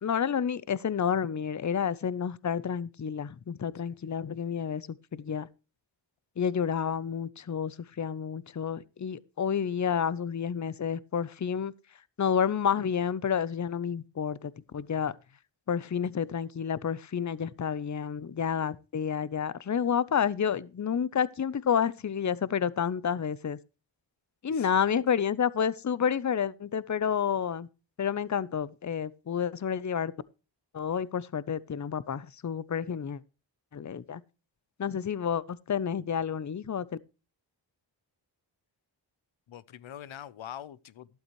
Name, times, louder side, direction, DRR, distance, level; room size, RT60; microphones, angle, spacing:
voice 1, 0.0-5.5 6.4-11.7 12.2-15.2 15.7-23.6 24.4-27.7 28.0-30.1 30.7-33.2 33.7-34.2 34.8-36.9, left 7 dB, 40° left, 0.7 m, -30 dB
voice 2, 24.5-24.8 39.5-41.1, left 10 dB, 85° left, 0.7 m, -44 dB
12.5 x 12.0 x 3.1 m
cardioid pair, 60°, 46 cm